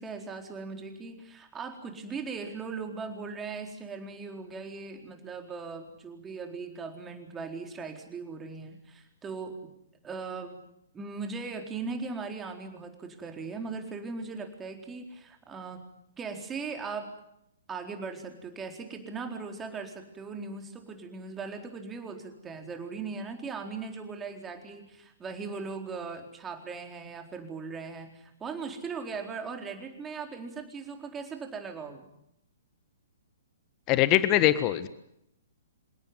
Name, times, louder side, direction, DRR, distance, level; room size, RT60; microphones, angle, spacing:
voice 1, 0.0-9.6 10.0-10.5 10.9-15.8 16.2-17.1 17.7-32.1, right 4 dB, 15° right, 4 dB, 4.2 m, -39 dB
voice 2, 33.9-34.9, left 14 dB, 30° left, 14 dB, 1.5 m, -22 dB
27.5 x 17.5 x 9.8 m, 0.77 s
figure-of-eight pair, 120°, 0 cm